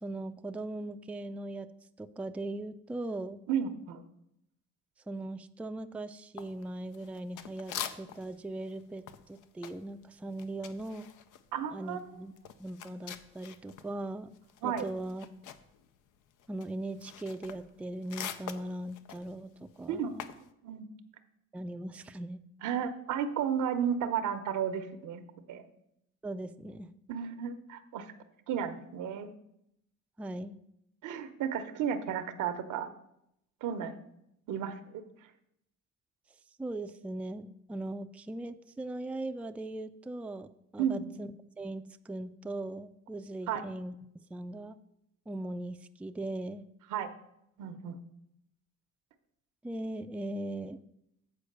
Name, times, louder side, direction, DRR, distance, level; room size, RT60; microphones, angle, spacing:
voice 1, 0.0-1.7 2.0-3.4 5.1-11.1 11.7-12.3 12.6-14.3 14.6-15.3 16.5-20.2 21.5-22.4 26.2-26.9 30.2-30.6 36.6-40.5 40.7-41.3 41.6-44.8 45.3-46.6 49.6-50.8, right 1 dB, 5° right, 8 dB, 0.3 m, -39 dB
voice 2, 3.5-4.0 11.5-12.1 14.6-14.9 19.9-20.1 20.6-20.9 22.6-25.2 25.5-25.6 27.1-28.1 28.5-29.3 31.0-32.9 33.6-33.9 34.5-35.0 40.8-41.0 43.5-43.6 46.9-47.1 47.6-48.0, right 8 dB, 85° right, 10 dB, 0.8 m, -33 dB
sound 1, 6.4-8.4 8.7-13.9 14.2-20.5, left 9 dB, 90° left, 0.6 m, -44 dB
8.3 x 4.6 x 6.6 m, 0.79 s
cardioid pair, 90°, 30 cm